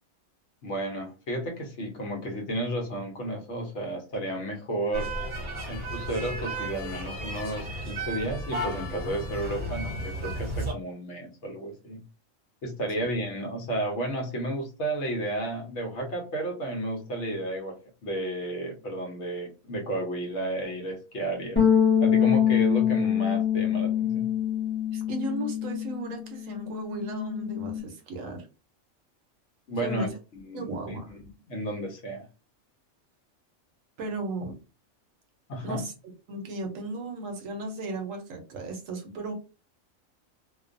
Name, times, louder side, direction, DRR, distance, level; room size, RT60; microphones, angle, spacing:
voice 1, 0.6-5.1 5.7-12.0 12.6-21.6 22.0-24.3 29.7-30.1 30.3-32.3 35.5-35.8, right 1 dB, 60° left, 1 dB, 1.0 m, -32 dB
sound 1, 4.9-10.7, right 1 dB, 45° right, 0.8 m, -34 dB
sound 2, 21.6-26.1 26.4-27.8, left 9 dB, 10° left, 0.6 m, -25 dB
voice 2, 24.9-28.5 29.8-30.1 30.5-31.1 34.0-34.6 35.6-35.9 36.3-39.3, right 2 dB, 70° right, 4 dB, 1.0 m, -35 dB
2.5 x 2.2 x 2.5 m, 0.33 s
omnidirectional pair, 1.4 m